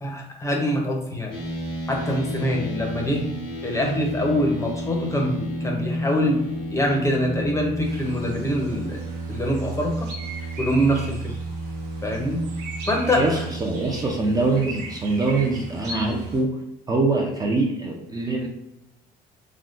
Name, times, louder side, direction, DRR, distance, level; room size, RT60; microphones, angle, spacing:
voice 1, 0.0-1.3 1.9-3.3 3.6-10.1 10.6-11.3 12.0-12.5 12.8-13.4, equal, 20° left, 1 dB, 0.6 m, -24 dB
sound 1, 1.3-16.4, equal, 90° left, 0.9 m, -32 dB
sound 2, 7.8-16.4, right 2 dB, 85° right, 0.9 m, -40 dB
voice 2, 13.1-16.6 16.9-18.5, right 3 dB, 20° right, 0 dB, 0.5 m, -24 dB
3.5 x 2.1 x 2.5 m, 0.85 s
cardioid pair, 110°, 17 cm